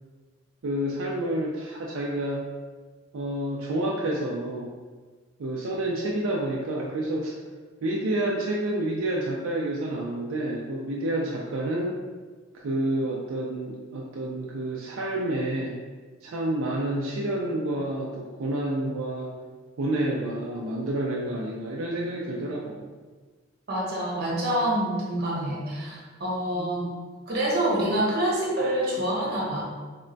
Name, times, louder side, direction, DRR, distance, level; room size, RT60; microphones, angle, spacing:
voice 1, 0.6-2.4 3.1-4.7 5.4-7.4 7.8-12.0 12.5-15.8 16.2-19.3 19.8-22.9 26.5-26.9, right 1 dB, 80° right, -3 dB, 0.4 m, -29 dB
voice 2, 23.7-26.9 27.3-29.6, right 1 dB, 50° right, -4 dB, 0.9 m, -26 dB
3.4 x 2.2 x 3.9 m, 1.4 s
head